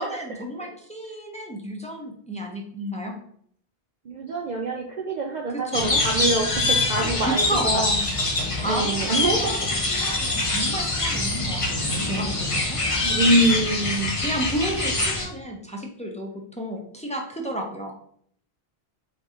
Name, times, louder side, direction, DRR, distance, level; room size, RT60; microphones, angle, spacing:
voice 1, 0.0-3.2 5.5-6.0 7.2-8.0 8.5-12.8 14.2-17.9, right 1 dB, 10° left, 0 dB, 0.5 m, -32 dB
voice 2, 4.1-7.4 8.7-9.7 13.0-14.2, right 2 dB, 55° right, 0 dB, 0.6 m, -25 dB
sound 1, 5.7-15.3, left 2 dB, 35° left, 0.8 m, -24 dB
3.4 x 3.2 x 4.5 m, 0.64 s
omnidirectional pair, 1.0 m